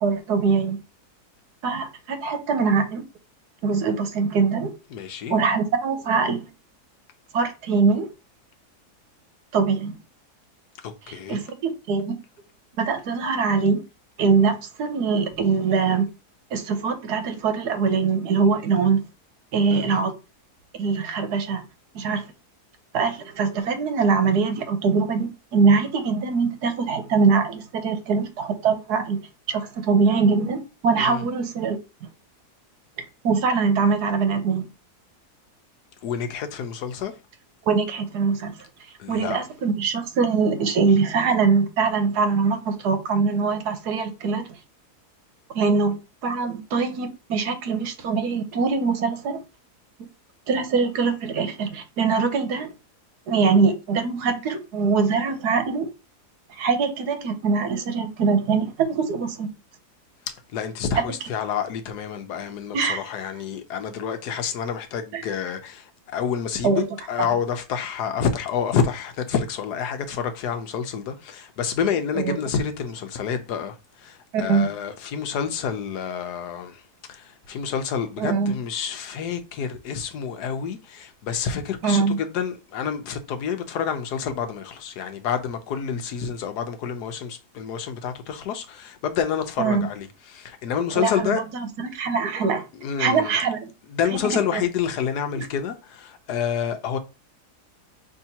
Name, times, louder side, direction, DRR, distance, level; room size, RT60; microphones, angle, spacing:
voice 1, 0.0-0.8 1.6-3.0 3.6-4.7 5.3-6.5 7.3-8.1 9.5-10.0 11.3-12.1 12.8-13.8 14.2-16.1 16.5-19.0 19.5-20.1 20.8-21.6 21.9-22.2 22.9-29.2 29.5-32.1 33.2-34.7 37.7-38.5 39.1-44.4 45.5-46.0 46.2-49.4 50.5-52.7 53.3-55.9 56.6-59.5 62.7-63.0 65.1-65.2 66.6-66.8 67.2-67.3 72.2-72.4 74.3-74.7 78.2-78.5 81.8-82.2 89.6-89.9 90.9-92.7 93.0-93.7 94.1-94.6, right 5 dB, 80° right, 1.5 m, -22 dB
voice 2, 4.9-5.4 10.8-11.4 19.7-20.0 31.0-31.2 36.0-37.1 39.0-39.4 60.3-66.8 67.1-76.8 77.1-91.4 92.8-93.4 93.9-97.0, left 7 dB, 80° left, 1.3 m, -28 dB
5.6 x 3.3 x 2.8 m
omnidirectional pair, 1.7 m